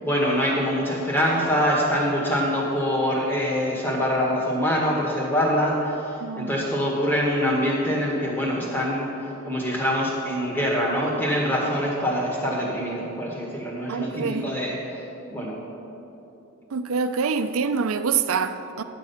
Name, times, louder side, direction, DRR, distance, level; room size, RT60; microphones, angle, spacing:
voice 1, 0.0-15.0 15.3-15.6, equal, 10° left, -3 dB, 1.7 m, -24 dB
voice 2, 6.2-6.5 13.9-14.4 16.7-18.8, right 5 dB, 85° right, 10 dB, 0.5 m, -25 dB
10.5 x 7.5 x 5.6 m, 2.9 s
head